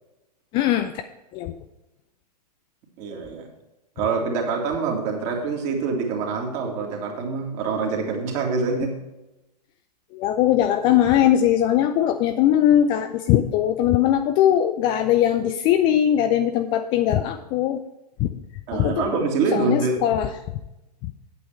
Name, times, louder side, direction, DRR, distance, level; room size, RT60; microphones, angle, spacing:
voice 1, 0.5-0.9 1.3-1.5 8.8-8.9 10.1-17.8 18.2-18.3 18.7-19.1 19.5-20.4 21.0-21.1, left 11 dB, 25° left, 9 dB, 0.4 m, -20 dB
voice 2, 3.0-3.5 4.0-9.0 18.7-20.0, right 4 dB, 35° right, 1 dB, 2.3 m, -25 dB
8.7 x 8.4 x 4.5 m, 0.95 s
figure-of-eight pair, 110°, 21 cm